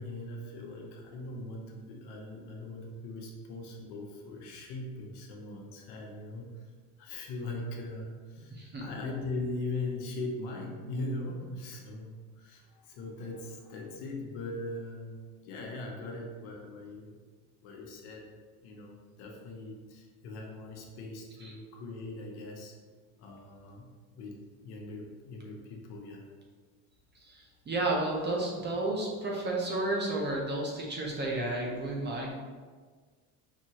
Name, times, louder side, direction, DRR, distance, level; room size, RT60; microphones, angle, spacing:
voice 1, 0.0-6.7 7.0-8.5 8.8-17.2 17.6-18.3 18.6-22.7 23.2-26.2, left 2 dB, 65° left, 0 dB, 0.9 m, -40 dB
voice 2, 8.5-8.9 21.4-21.5 27.2-32.3, right 2 dB, 25° right, -2 dB, 0.7 m, -32 dB
4.6 x 2.7 x 2.9 m, 1.5 s
supercardioid pair, 115°, 43 cm